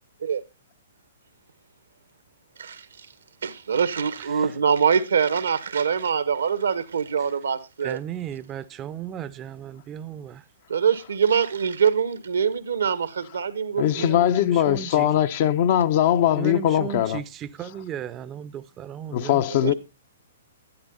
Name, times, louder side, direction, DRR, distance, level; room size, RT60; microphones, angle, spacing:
voice 1, 2.6-3.1 3.4-8.0 10.7-14.2 19.6-19.7, right 7 dB, 70° right, 1.2 m, -24 dB
voice 2, 4.2-4.5 7.8-10.4 13.9-15.1 16.4-19.4, right 9 dB, 25° right, 0.7 m, -35 dB
voice 3, 13.8-17.2 19.1-19.7, left 11 dB, 45° left, 0.8 m, -21 dB
12.0 x 10.5 x 4.0 m
figure-of-eight pair, 115°, 0 cm